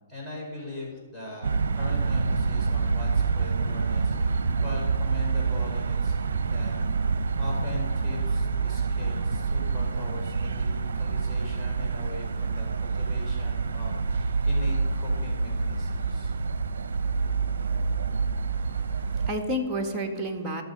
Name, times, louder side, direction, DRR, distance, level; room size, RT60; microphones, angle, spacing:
voice 1, 0.1-6.8 7.1-16.3, left 2 dB, 10° left, -5 dB, 4.8 m, -40 dB
sound 1, 1.4-19.3, right 4 dB, 70° right, 0.7 m, -27 dB
voice 2, 18.5-20.6, equal, 15° right, 2 dB, 1.9 m, -31 dB
18.5 x 6.7 x 5.5 m, 1.4 s
hypercardioid pair, 130°, 0 cm